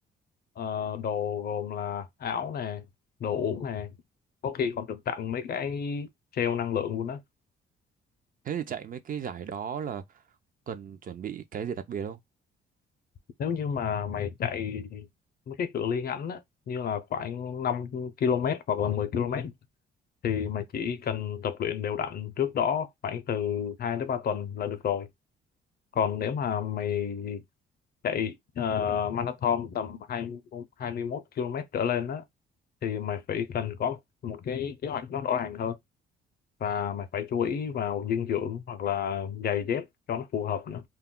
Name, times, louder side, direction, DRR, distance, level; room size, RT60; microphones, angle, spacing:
voice 1, 0.6-2.9 3.2-3.9 4.4-7.2 13.4-15.1 15.5-16.4 16.7-19.5 20.2-25.1 25.9-27.4 28.0-32.2 32.8-35.8 36.6-40.8, left 8 dB, 50° left, 0.5 m, -30 dB
voice 2, 8.4-10.2 10.7-12.2, right 8 dB, 45° right, 0.4 m, -35 dB
2.3 x 2.1 x 3.6 m
cardioid pair, 90°, 20 cm